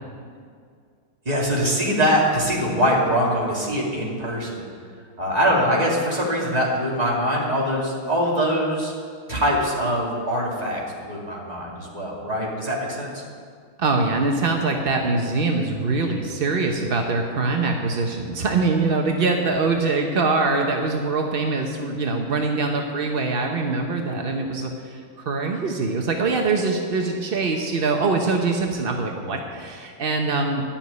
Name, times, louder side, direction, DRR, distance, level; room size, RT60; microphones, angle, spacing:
voice 1, 1.2-4.7 5.2-8.9 9.3-13.2, equal, 20° right, -3 dB, 2.4 m, -23 dB
voice 2, 13.8-30.7, right 3 dB, 60° right, 2 dB, 0.6 m, -23 dB
11.5 x 7.2 x 9.6 m, 2.1 s
omnidirectional pair, 2.3 m